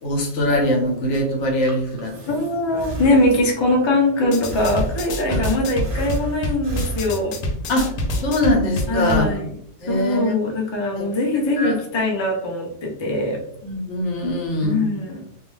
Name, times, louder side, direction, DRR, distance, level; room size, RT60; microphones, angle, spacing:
voice 1, 0.0-2.1 5.3-5.5 7.7-7.9 8.2-9.4 9.8-10.3 11.0-11.1 11.6-11.8 13.6-14.8, left 1 dB, 65° left, 1 dB, 1.0 m, -22 dB
Breathing, 1.4-3.7 4.5-5.4 5.8-7.6, right 2 dB, 45° right, 0.4 m, -33 dB
voice 2, 2.3-7.4 8.9-9.5 9.9-13.4 14.6-15.2, left 2 dB, 45° left, 0 dB, 0.3 m, -21 dB
sound 1, 4.2-9.3, left 1 dB, 85° left, 1.0 m, -27 dB
2.4 x 2.3 x 3.1 m, 0.72 s
omnidirectional pair, 1.3 m